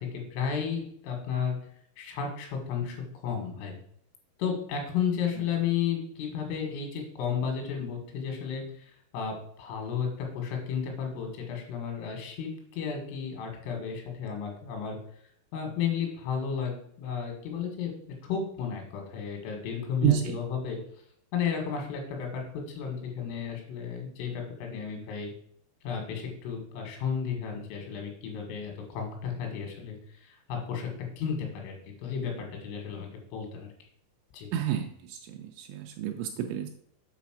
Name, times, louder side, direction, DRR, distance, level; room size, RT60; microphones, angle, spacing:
voice 1, 0.0-1.6 2.0-3.0 3.2-3.8 4.4-15.0 15.5-17.9 18.2-20.8 21.3-25.3 25.8-30.9 31.2-33.7 34.3-34.5, left 7 dB, 80° left, 2 dB, 4.4 m, -33 dB
voice 2, 20.0-20.4 34.5-36.7, right 11 dB, 80° right, 3 dB, 2.8 m, -29 dB
8.6 x 4.2 x 6.2 m, 0.66 s
omnidirectional pair, 5.8 m